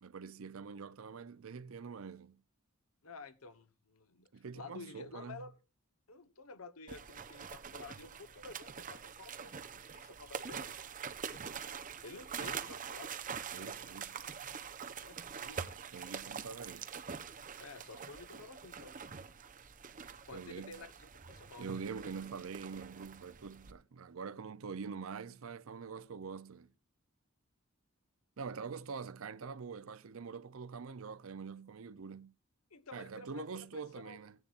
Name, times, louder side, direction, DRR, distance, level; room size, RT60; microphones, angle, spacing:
voice 1, 0.0-2.4 4.3-5.4 13.5-14.2 15.7-16.9 20.3-20.8 21.6-26.7 28.4-32.3 32.9-34.3, right 5 dB, 70° right, 0.6 m, -45 dB
voice 2, 3.0-5.5 6.1-10.7 12.0-13.2 15.0-15.7 17.6-19.0 19.9-20.0 20.3-21.8 32.7-34.2, left 3 dB, 90° left, 1.1 m, -51 dB
sound 1, 6.9-23.7, right 6 dB, 40° right, 0.8 m, -45 dB
17.0 x 11.0 x 2.5 m
head